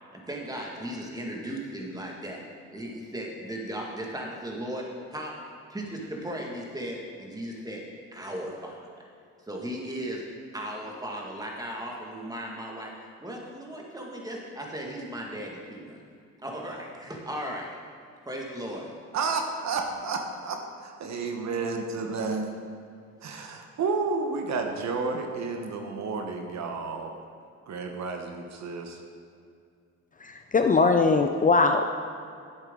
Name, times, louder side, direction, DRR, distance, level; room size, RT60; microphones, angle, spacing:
voice 1, 0.1-2.4 2.7-5.3 5.7-7.8 8.1-8.9 9.5-10.3 10.5-12.9 13.2-16.0 16.4-17.8 18.3-18.9, equal, 10° right, -1 dB, 1.9 m, -36 dB
voice 2, 19.1-22.4 23.2-27.1 27.7-29.0, right 4 dB, 65° right, 3 dB, 1.2 m, -31 dB
voice 3, 30.2-31.8, left 4 dB, 25° left, 5 dB, 0.5 m, -21 dB
11.0 x 8.2 x 3.8 m, 2.3 s
cardioid pair, 90°, 30 cm